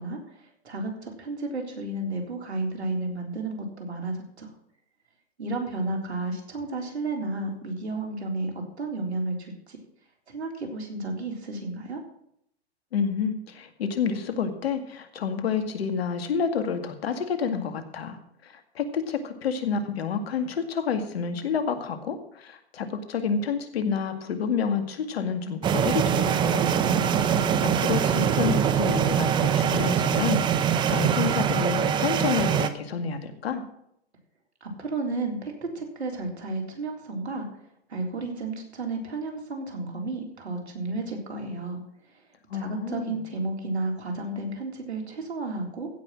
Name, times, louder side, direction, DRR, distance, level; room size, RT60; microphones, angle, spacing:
voice 1, 0.0-4.5 5.4-9.8 10.3-12.0 34.6-37.5 37.9-41.8 42.1-42.2 42.5-45.9, right 2 dB, 85° right, 2 dB, 3.8 m, -32 dB
voice 2, 12.9-18.2 18.4-27.0 27.2-33.6 42.5-43.2, left 6 dB, 70° left, 8 dB, 2.2 m, -29 dB
sound 1, 25.6-32.7, right 8 dB, 15° right, 0.6 m, -23 dB
15.5 x 5.9 x 7.4 m, 0.73 s
hypercardioid pair, 130°, 32 cm